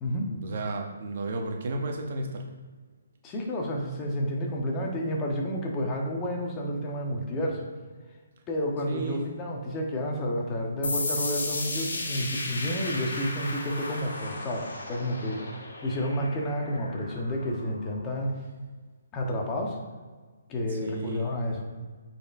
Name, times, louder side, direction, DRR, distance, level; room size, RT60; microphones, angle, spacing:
voice 1, 0.3-2.4 8.9-9.3 20.7-21.2, right 2 dB, 55° right, 2 dB, 0.9 m, -33 dB
voice 2, 3.2-7.7 8.5-15.4 15.8-18.3 19.1-19.8 20.5-21.6, equal, 20° left, 0 dB, 1.1 m, -30 dB
sound 1, 10.8-18.2, left 2 dB, 80° left, 1.5 m, -35 dB
8.7 x 4.3 x 2.6 m, 1.5 s
hypercardioid pair, 150°, 0 cm